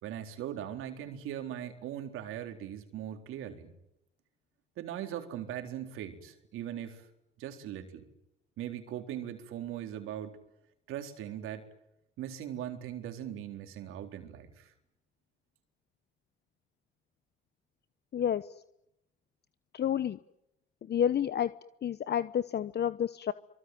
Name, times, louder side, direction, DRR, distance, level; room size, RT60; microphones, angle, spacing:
voice 1, 0.0-3.7 4.8-7.1 7.4-8.1 8.6-10.4 10.9-11.6 12.2-14.7, right 10 dB, 75° right, 6 dB, 4.1 m, -40 dB
voice 2, 18.1-18.5 19.7-20.2 20.9-21.5 21.8-23.3, left 9 dB, 50° left, 14 dB, 1.0 m, -29 dB
25.0 x 24.5 x 9.4 m, 0.83 s
supercardioid pair, 65°, 21 cm